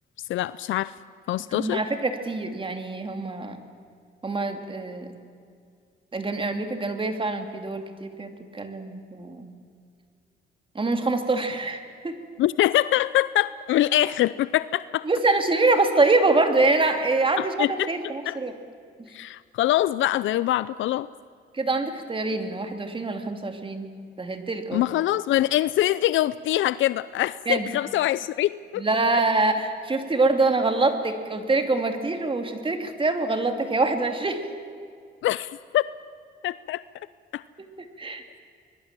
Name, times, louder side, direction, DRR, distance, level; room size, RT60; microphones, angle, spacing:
voice 1, 0.3-0.9 1.3-1.8 12.4-15.0 17.4-18.4 19.1-21.1 24.7-28.8 35.2-35.9 36.4-36.8 37.3-37.4, left 14 dB, 75° left, 17 dB, 0.5 m, -24 dB
voice 2, 1.5-3.6 4.2-5.1 6.1-9.5 10.7-12.2 15.0-18.5 21.5-23.9 24.2-24.8 27.5-27.7 28.8-34.4 38.0-38.2, right 3 dB, 25° right, 6 dB, 2.6 m, -25 dB
25.5 x 21.5 x 7.5 m, 2.3 s
cardioid pair, 90°, 20 cm